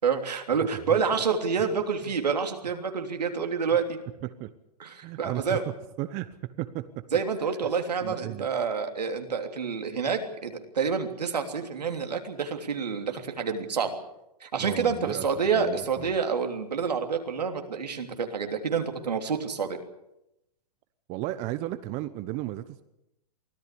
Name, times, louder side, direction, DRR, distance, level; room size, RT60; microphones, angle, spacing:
voice 1, 0.0-4.0 4.8-5.6 7.1-14.0 14.4-19.8, right 6 dB, 90° right, 5 dB, 3.2 m, -28 dB
voice 2, 5.0-5.6 6.0-6.8 8.0-8.5 14.6-16.1 21.1-22.8, right 16 dB, 35° right, 12 dB, 1.0 m, -34 dB
24.0 x 15.0 x 8.5 m, 0.87 s
hypercardioid pair, 125°, 20 cm